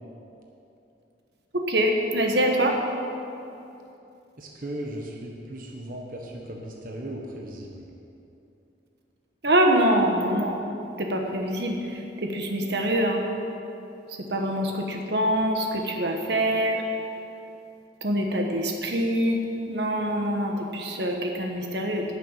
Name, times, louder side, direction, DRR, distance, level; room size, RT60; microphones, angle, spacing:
voice 1, 1.7-2.8 9.4-10.6 11.0-11.8 12.2-13.2 14.3-16.8 18.0-19.4 19.7-22.0, right 1 dB, 65° right, 2 dB, 1.3 m, -24 dB
voice 2, 4.4-7.9, right 1 dB, 50° right, -1 dB, 1.2 m, -37 dB
11.0 x 6.9 x 8.9 m, 2.8 s
head